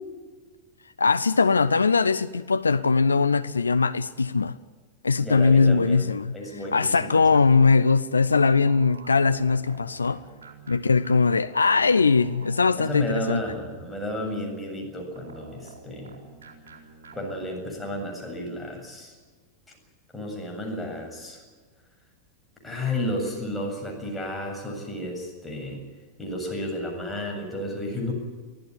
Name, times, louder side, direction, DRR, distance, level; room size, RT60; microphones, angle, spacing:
voice 1, 1.0-4.6 5.0-6.3 6.7-10.2 10.7-13.4, left 4 dB, 75° left, 0.6 m, -21 dB
voice 2, 5.2-6.1 6.3-7.4 12.8-16.2 17.1-19.1 20.1-21.4 22.6-25.8 26.2-28.1, left 1 dB, 10° left, 7.5 m, -32 dB
sound 1, 8.2-13.6 15.2-17.7, right 5 dB, 65° right, 4.4 m, -46 dB
24.0 x 15.5 x 9.8 m
figure-of-eight pair, 90°, 0 cm